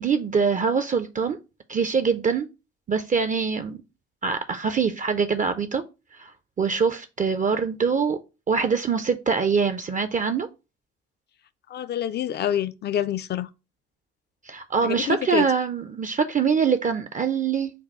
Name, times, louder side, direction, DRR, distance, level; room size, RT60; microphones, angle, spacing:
voice 1, 0.0-1.4 1.7-2.5 2.9-3.8 4.2-5.8 6.2-6.3 6.6-8.2 8.5-10.5 14.5-17.7, right 5 dB, 25° right, 0.4 m, -24 dB
voice 2, 11.7-13.5 14.8-15.5, left 10 dB, 35° left, 0.4 m, -27 dB
5.4 x 2.2 x 4.0 m
figure-of-eight pair, 45°, 33 cm